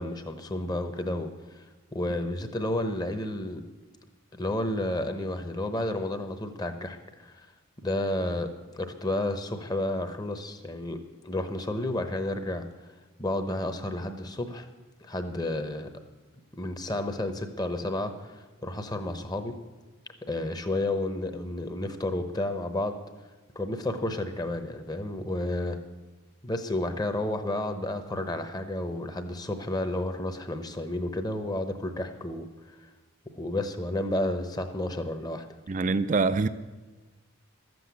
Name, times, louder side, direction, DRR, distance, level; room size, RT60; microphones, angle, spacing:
voice 1, 0.0-1.6 1.9-3.6 4.3-7.5 7.8-11.0 11.2-12.6 13.2-14.7 15.0-15.9 16.5-19.5 20.3-23.0 23.5-25.8 26.4-32.9 33.4-35.5, left 1 dB, 20° left, 0.8 m, -31 dB
voice 2, 35.7-36.5, right 4 dB, 35° right, 0.4 m, -24 dB
12.5 x 7.8 x 8.3 m
head